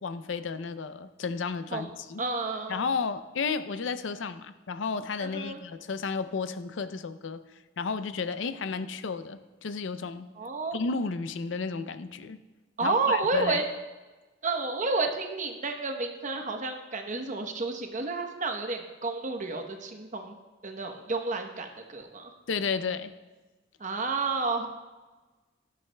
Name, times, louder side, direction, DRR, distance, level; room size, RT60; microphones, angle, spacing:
voice 1, 0.0-2.2 2.7-7.4 7.8-10.3 10.7-12.4 12.8-13.6 22.5-23.1, left 5 dB, 80° left, 12 dB, 0.5 m, -32 dB
voice 2, 2.2-2.9 5.2-5.6 10.4-10.8 12.8-13.6 14.4-20.4 20.6-22.3 23.8-24.7, right 3 dB, 40° right, 5 dB, 0.9 m, -31 dB
14.0 x 11.0 x 2.2 m, 1.2 s
head